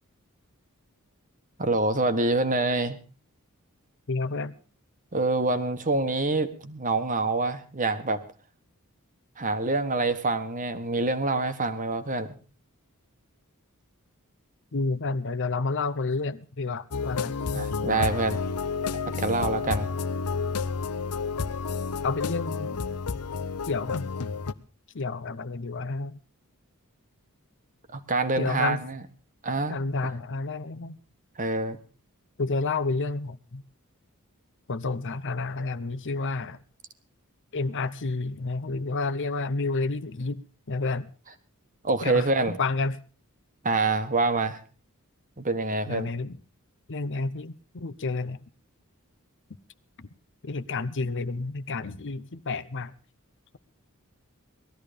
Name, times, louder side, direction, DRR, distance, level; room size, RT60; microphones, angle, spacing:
voice 1, 1.6-3.0 5.1-8.2 9.4-12.3 17.5-18.4 19.2-19.9 27.9-29.0 29.4-30.1 31.4-31.8 41.8-42.6 43.6-44.6 45.4-46.1, right 3 dB, 35° right, 1.4 m, -26 dB
voice 2, 4.1-4.5 14.7-17.4 22.0-22.8 23.7-24.0 24.9-26.2 28.4-28.8 29.7-31.0 32.4-33.6 34.7-36.6 37.5-40.4 40.7-41.1 42.0-43.0 45.9-46.4 46.9-48.4 50.4-52.9, left 3 dB, 55° left, 0.8 m, -30 dB
sound 1, 16.9-24.5, left 5 dB, 85° left, 0.8 m, -30 dB
19.0 x 13.0 x 5.1 m
head